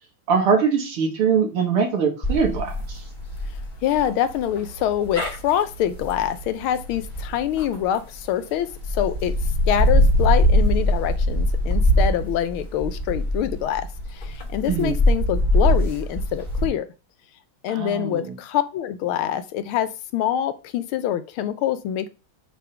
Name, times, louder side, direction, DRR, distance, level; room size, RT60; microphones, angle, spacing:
voice 1, 0.3-3.0 14.7-15.0 17.7-18.3, right 6 dB, 75° right, 2 dB, 2.5 m, -22 dB
sound 1, 2.2-8.2 8.7-16.7, equal, 25° left, 1.4 m, -22 dB
voice 2, 3.8-9.3 9.7-16.9 17.6-22.1, left 11 dB, 75° left, 12 dB, 1.5 m, -25 dB
7.1 x 3.7 x 5.7 m, 0.31 s
omnidirectional pair, 2.4 m